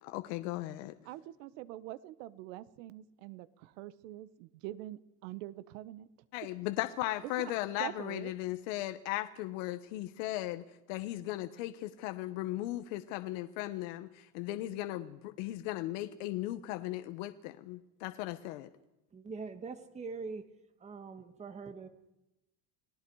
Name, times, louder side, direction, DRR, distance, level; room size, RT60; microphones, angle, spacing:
voice 1, 0.0-0.9 6.3-18.7, left 15 dB, 70° left, 9 dB, 1.2 m, -37 dB
voice 2, 1.0-6.1 7.2-7.5 7.8-8.3, right 15 dB, 75° right, 15 dB, 1.3 m, -44 dB
voice 3, 19.1-20.4 20.8-21.9, right 4 dB, 15° right, 9 dB, 1.6 m, -43 dB
30.0 x 19.0 x 4.8 m, 0.93 s
cardioid pair, 170°, 40 cm